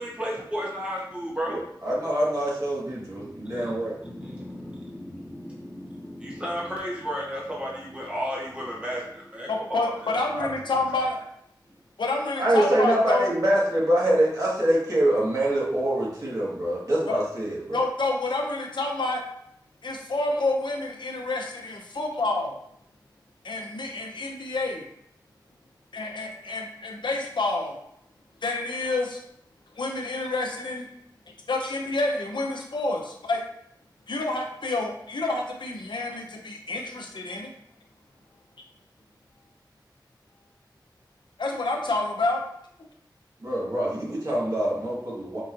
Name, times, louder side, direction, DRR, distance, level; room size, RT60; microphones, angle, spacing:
voice 1, 0.0-1.6 3.2-10.5, equal, 15° right, -4 dB, 1.0 m, -34 dB
voice 2, 1.5-3.9 12.4-17.8 43.4-45.4, right 1 dB, 45° right, -6 dB, 1.5 m, -25 dB
voice 3, 9.5-11.2 12.0-13.3 17.1-17.2 17.7-19.2 19.8-22.5 23.4-24.9 25.9-27.8 28.4-29.2 29.8-30.9 31.5-33.4 34.1-37.5 41.4-42.4, left 2 dB, 85° left, 1 dB, 0.7 m, -28 dB
5.4 x 2.9 x 2.5 m, 0.72 s
wide cardioid pair, 70°, 8 cm